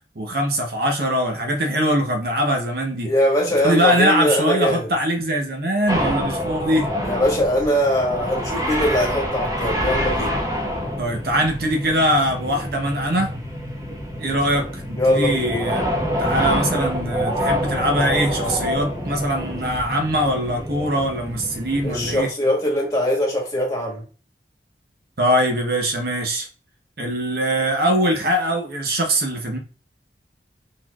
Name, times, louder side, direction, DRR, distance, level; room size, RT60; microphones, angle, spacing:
voice 1, 0.2-3.1 3.6-6.9 11.0-13.3 14.2-15.8 16.2-22.3 25.2-26.5 27.0-29.6, equal, 55° right, 2 dB, 0.8 m, -22 dB
voice 2, 3.0-4.9 7.0-10.3 14.9-15.6 21.8-24.0, left 1 dB, 20° left, -2 dB, 1.5 m, -21 dB
sound 1, 5.9-22.2, equal, 20° right, 1.0 m, -27 dB
4.4 x 4.2 x 2.3 m, 0.37 s
head